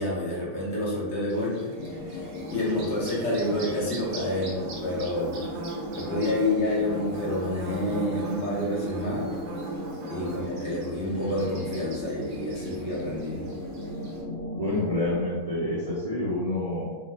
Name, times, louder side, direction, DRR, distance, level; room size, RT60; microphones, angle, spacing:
voice 1, 0.0-1.7 2.1-5.3 6.0-9.4 10.1-13.6, left 1 dB, 60° left, -5 dB, 0.9 m, -29 dB
Bird / Buzz, 1.3-14.2, right 2 dB, 60° right, 0.8 m, -39 dB
sound 1, 1.8-15.2, equal, 85° left, 1.0 m, -37 dB
voice 2, 14.5-17.0, left 1 dB, 40° right, -10 dB, 0.5 m, -28 dB
2.8 x 2.1 x 3.2 m, 1.2 s
omnidirectional pair, 1.5 m